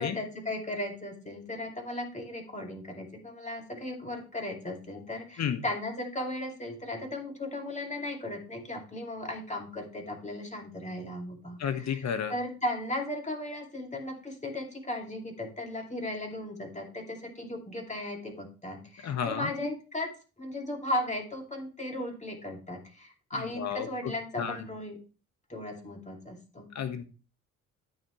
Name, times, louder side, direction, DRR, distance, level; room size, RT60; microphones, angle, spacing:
voice 1, 0.0-20.1 20.4-25.0 25.5-26.7, left 1 dB, 15° left, 2 dB, 2.6 m, -36 dB
voice 2, 11.6-12.3 19.0-19.5 23.4-24.1 24.4-24.6 26.7-27.0, left 8 dB, 40° left, 9 dB, 1.5 m, -32 dB
13.5 x 5.5 x 3.1 m, 0.33 s
figure-of-eight pair, 45°, 40 cm